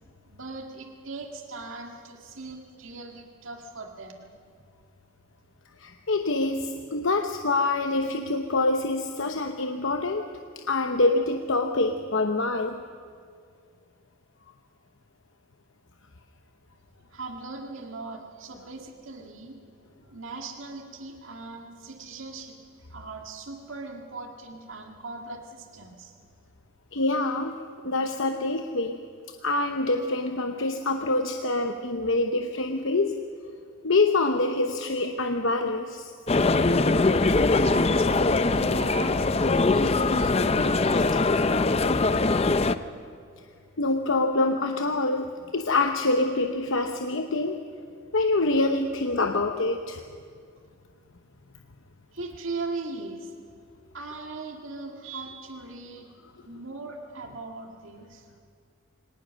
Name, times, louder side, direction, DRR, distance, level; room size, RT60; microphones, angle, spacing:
voice 1, 0.2-4.3 16.9-19.7 20.0-26.1 37.6-41.5 52.1-53.3 53.9-56.1 56.4-58.3, right 3 dB, 65° right, 2 dB, 1.9 m, -39 dB
voice 2, 5.8-10.2 10.7-12.8 26.9-27.6 27.8-29.0 29.4-33.2 33.8-36.1 43.8-47.6 48.1-50.0, left 2 dB, 65° left, 5 dB, 0.9 m, -25 dB
sound 1, 36.3-42.8, left 3 dB, 30° left, 0.5 m, -22 dB
24.5 x 18.5 x 6.4 m, 2.2 s
head